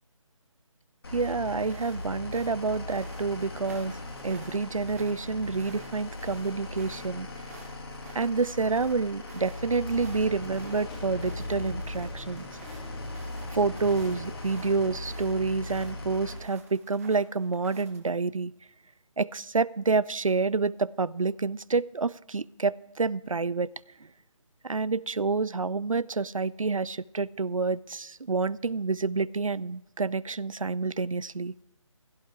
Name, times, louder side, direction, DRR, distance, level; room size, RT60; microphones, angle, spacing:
sound 1, 1.0-16.4, left 2 dB, 50° left, 2.5 m, -39 dB
voice 1, 1.1-7.3 8.1-12.4 13.5-18.5 19.2-23.7 24.6-31.5, right 4 dB, 90° right, 22 dB, 0.4 m, -28 dB
sound 2, 1.6-18.1, right 5 dB, 30° right, 1.5 m, -53 dB
sound 3, 9.8-15.2, left 3 dB, 5° left, 0.5 m, -48 dB
16.5 x 11.5 x 4.7 m, 0.89 s
figure-of-eight pair, 150°, 17 cm